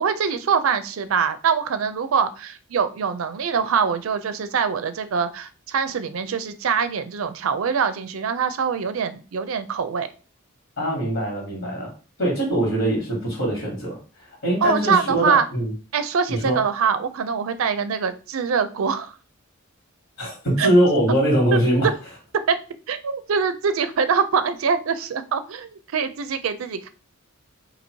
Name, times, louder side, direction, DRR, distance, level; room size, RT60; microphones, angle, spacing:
voice 1, 0.0-10.1 14.6-15.5 15.9-19.2 20.6-20.7 21.5-21.9 22.3-22.6 22.9-26.9, right 6 dB, 75° right, 11 dB, 0.4 m, -24 dB
voice 2, 10.8-11.9 12.2-14.0 14.4-15.7 16.3-16.6 20.2-21.9, right 1 dB, 65° left, -2 dB, 1.8 m, -22 dB
2.8 x 2.7 x 4.4 m, 0.36 s
head